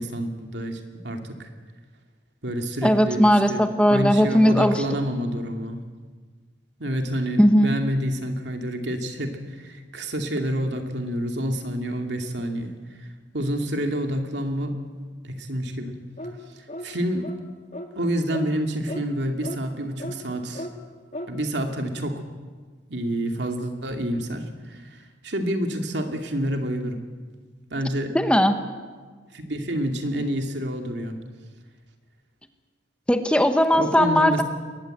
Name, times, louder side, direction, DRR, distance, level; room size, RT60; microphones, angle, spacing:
voice 1, 0.0-1.5 2.4-3.2 3.5-3.6 3.9-5.8 6.8-13.1 13.3-14.8 15.2-16.0 16.6-17.3 18.0-20.7 21.3-22.2 22.9-27.0 27.7-28.1 29.3-31.2 33.7-34.4, equal, 70° right, 4 dB, 2.7 m, -28 dB
voice 2, 2.8-4.8 7.4-7.8 28.1-28.6 33.1-34.4, equal, 5° left, 8 dB, 1.1 m, -18 dB
sound 1, 16.2-16.4 16.7-16.9 17.2-17.4 17.7-17.9 18.3-18.5 18.9-19.0 19.4-19.6 20.0-20.2 20.6-20.7 21.1-21.3, left 1 dB, 40° left, 2.0 m, -35 dB
22.0 x 19.0 x 8.0 m, 1.5 s
head